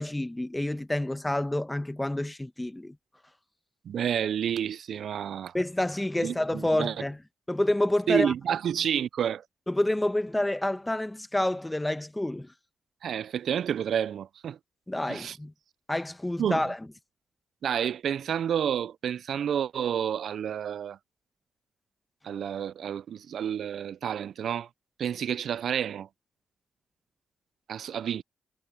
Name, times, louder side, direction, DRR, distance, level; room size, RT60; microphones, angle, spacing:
voice 1, 0.0-2.9 5.5-7.2 7.5-8.3 9.7-12.5 14.9-15.5 15.9-16.8, left 1 dB, 10° left, 1.3 m, -28 dB
voice 2, 3.9-5.5 6.2-7.0 8.1-9.4 13.0-14.6 15.1-15.4 16.4-16.6 17.6-21.0 22.2-24.7 25.0-26.1 27.7-28.2, right 9 dB, 70° right, 0.4 m, -29 dB
cardioid pair, 70°, 0 cm